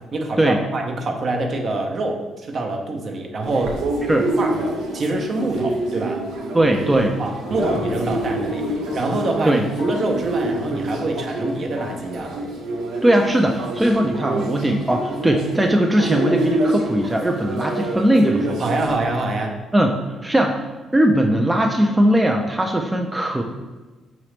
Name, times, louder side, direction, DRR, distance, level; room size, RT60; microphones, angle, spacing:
voice 1, 0.1-3.8 4.4-4.5 4.9-6.2 7.2-8.7 8.9-12.3 18.6-19.6, right 2 dB, 50° right, 2 dB, 0.7 m, -25 dB
sound 1, 3.4-18.9, right 1 dB, 85° right, 0.7 m, -27 dB
voice 2, 6.5-7.2 9.4-9.6 13.0-18.7 19.7-19.9 20.2-20.6 20.9-23.4, right 1 dB, 10° right, 2 dB, 0.4 m, -19 dB
sound 2, 7.2-9.3 9.7-12.0, left 4 dB, 90° left, 0.5 m, -36 dB
4.9 x 3.0 x 3.2 m, 1.2 s
cardioid pair, 90°, 0 cm